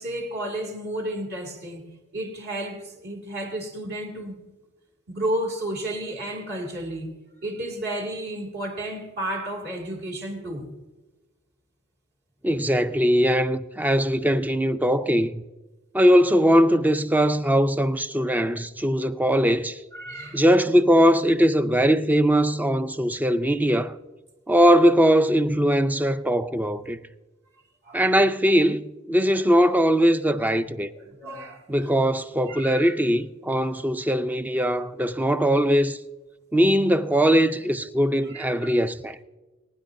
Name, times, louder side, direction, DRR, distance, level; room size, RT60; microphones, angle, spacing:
voice 1, 0.0-1.9 2.1-4.4 5.1-7.1 7.4-10.7 19.9-20.4 27.8-28.3 29.3-29.4 30.5-30.6 31.0-31.9 32.5-32.9 38.2-38.7, right 1 dB, 50° right, 2.4 m, -32 dB
voice 2, 12.4-15.4 15.9-19.8 20.3-24.0 24.5-27.0 27.9-30.9 31.7-36.0 36.5-39.2, equal, 10° right, 0.4 m, -20 dB
23.5 x 9.9 x 2.6 m
head